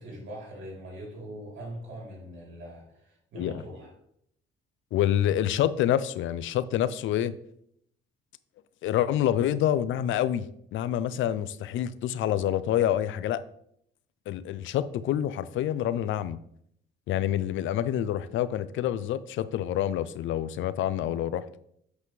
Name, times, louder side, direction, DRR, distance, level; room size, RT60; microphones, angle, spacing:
voice 1, 0.0-3.9, equal, 75° right, -2 dB, 3.1 m, -42 dB
voice 2, 4.9-7.4 8.8-13.4 14.3-16.4 17.1-21.4, left 11 dB, 75° left, 16 dB, 0.5 m, -27 dB
8.1 x 5.3 x 3.2 m, 0.71 s
cardioid pair, 90°, 20 cm